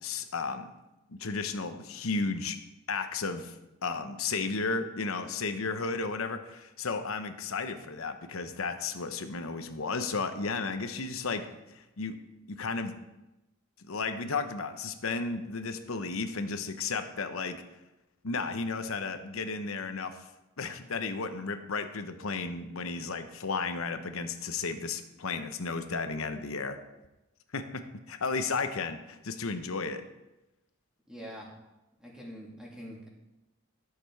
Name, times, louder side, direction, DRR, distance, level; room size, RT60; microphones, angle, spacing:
voice 1, 0.0-0.7 1.1-2.6 2.9-3.5 3.8-11.5 11.7-12.2 12.5-13.0 13.8-17.6 18.2-20.2 20.6-26.8 27.5-30.0, left 4 dB, 80° left, 8 dB, 0.9 m, -33 dB
voice 2, 31.1-31.5 32.0-33.1, equal, 5° right, -3 dB, 2.4 m, -44 dB
13.0 x 6.8 x 4.6 m, 0.97 s
head